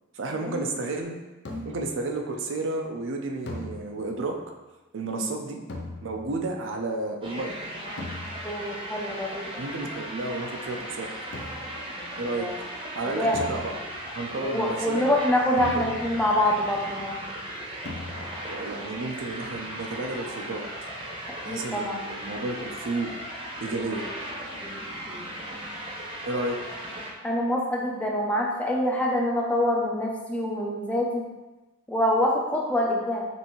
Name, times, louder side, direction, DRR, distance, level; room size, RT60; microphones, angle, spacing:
voice 1, 0.1-1.2 1.6-4.4 4.9-5.6 6.0-7.6 9.6-11.1 12.2-12.5 12.9-13.7 14.1-15.0 15.6-15.9 18.4-20.6 21.4-23.1 23.6-24.0 26.3-26.6, right 2 dB, 65° right, 3 dB, 0.5 m, -31 dB
sound 1, 1.4-2.0 3.5-4.3 5.7-6.5 8.0-8.7 11.3-11.9 13.3-14.2 15.6-16.4 17.8-18.5, left 2 dB, 60° left, 0.5 m, -39 dB
sound 2, 7.2-27.1, right 1 dB, 25° right, 0.8 m, -37 dB
voice 2, 8.4-9.5 12.0-12.1 12.4-12.6 13.1-13.5 14.3-17.2 21.5-22.0 24.6-24.8 25.1-25.2 27.2-31.2 31.9-33.3, left 1 dB, 5° left, -2 dB, 0.5 m, -26 dB
5.4 x 2.6 x 3.0 m, 1.1 s
head